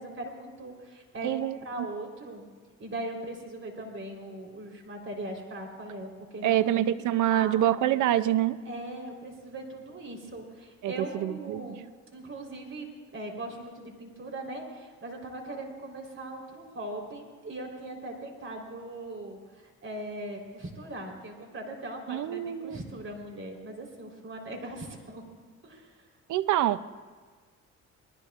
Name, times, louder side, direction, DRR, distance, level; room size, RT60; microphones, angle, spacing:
voice 1, 0.0-2.5 2.8-6.7 7.0-7.6 8.6-11.9 12.1-25.2 25.6-26.1, right 1 dB, 45° right, 3.9 m, -40 dB
voice 2, 1.2-1.9 6.4-8.6 10.8-11.7 22.1-22.8 26.3-26.9, right 12 dB, 75° right, 0.6 m, -26 dB
28.5 x 20.0 x 2.5 m
cardioid pair, 90°, 30 cm